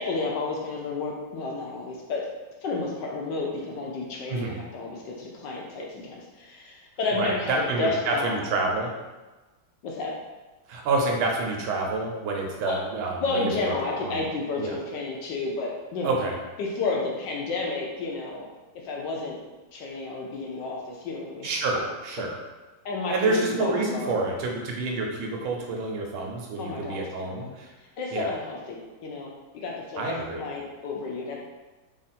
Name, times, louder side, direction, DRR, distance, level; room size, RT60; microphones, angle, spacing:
voice 1, 0.0-2.3 2.6-8.4 9.8-10.1 12.7-12.8 13.2-16.2 16.6-18.5 18.7-19.4 19.7-21.5 22.8-24.3 26.6-27.5 28.0-29.3 29.6-31.4, left 3 dB, 70° left, -2 dB, 1.1 m, -31 dB
voice 2, 7.1-8.9 10.7-13.7 14.0-14.2 14.6-14.7 16.0-16.4 21.4-22.4 23.1-27.7 28.1-28.3 30.0-30.4, right 3 dB, 85° right, 0 dB, 1.5 m, -28 dB
3.5 x 2.5 x 4.1 m, 1.2 s
omnidirectional pair, 2.2 m